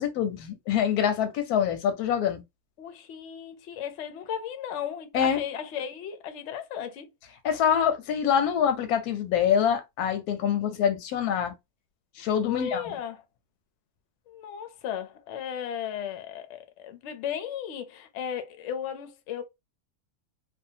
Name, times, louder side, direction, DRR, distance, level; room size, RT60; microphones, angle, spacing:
voice 1, 0.0-2.4 5.1-5.4 7.4-11.5 12.2-12.9, left 8 dB, 90° left, 1.1 m, -25 dB
voice 2, 2.8-7.1 12.5-13.2 14.3-19.4, left 8 dB, 65° left, 0.7 m, -35 dB
2.6 x 2.2 x 2.6 m
omnidirectional pair, 1.6 m